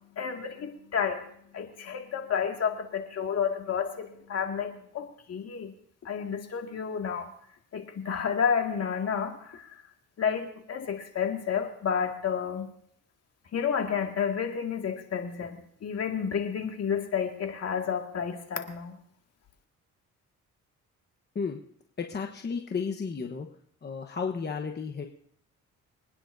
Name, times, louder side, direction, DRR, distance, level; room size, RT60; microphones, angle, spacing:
voice 1, 0.2-1.3 1.5-5.7 6.0-7.3 7.7-9.7 10.2-12.7 13.5-19.0, left 7 dB, 55° left, 3 dB, 2.1 m, -30 dB
voice 2, 22.0-23.5 23.8-25.0, left 5 dB, 35° left, 3 dB, 1.1 m, -33 dB
25.0 x 9.9 x 2.7 m, 0.66 s
cardioid pair, 90°, 30 cm